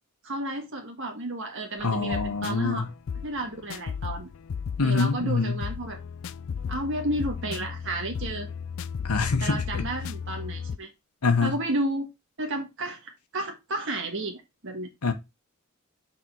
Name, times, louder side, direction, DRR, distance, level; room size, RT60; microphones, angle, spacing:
voice 1, 0.2-2.9 3.2-4.3 4.8-6.0 6.7-8.5 9.4-10.9 11.4-12.1 12.4-14.9, right 1 dB, 55° right, 1.5 m, -32 dB
voice 2, 1.8-2.9 4.8-5.6 9.0-9.9 11.2-11.6 15.0-15.1, left 4 dB, 90° left, 1.0 m, -25 dB
sound 1, 1.8-10.8, left 6 dB, 60° left, 0.4 m, -35 dB
6.3 x 3.7 x 4.6 m
head